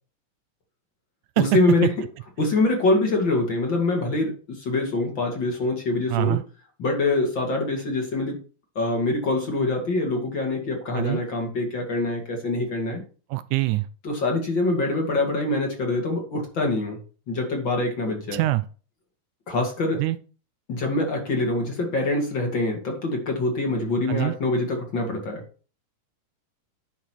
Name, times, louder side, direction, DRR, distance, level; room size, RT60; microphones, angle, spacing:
voice 1, 1.4-1.9 2.4-6.4 6.8-8.4 8.8-13.0 14.0-17.0 17.3-18.4 19.5-20.0 20.7-25.4, left 2 dB, 40° left, 1 dB, 2.5 m, -24 dB
voice 2, 6.1-6.4 10.9-11.2 13.3-13.9 18.3-18.6 20.0-20.2 24.1-24.4, right 18 dB, 80° right, 13 dB, 1.9 m, -23 dB
10.0 x 5.9 x 4.5 m, 0.38 s
omnidirectional pair, 3.6 m